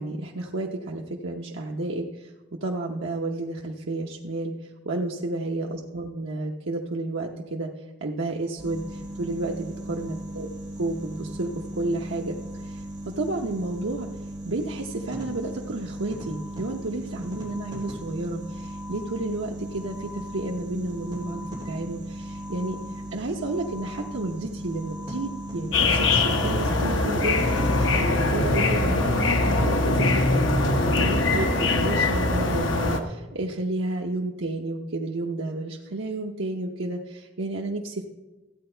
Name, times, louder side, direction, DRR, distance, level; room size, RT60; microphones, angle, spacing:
voice 1, 0.0-2.3 2.6-7.7 8.0-10.5 10.8-12.9 13.2-14.1 14.5-22.8 23.1-30.4 30.7-38.0, right 2 dB, 85° right, -1 dB, 0.9 m, -31 dB
sound 1, 8.6-28.0, right 1 dB, 25° right, 3.3 m, -37 dB
sound 2, 25.7-33.0, left 2 dB, 80° left, 1.1 m, -22 dB
14.5 x 8.7 x 4.5 m, 1.1 s
head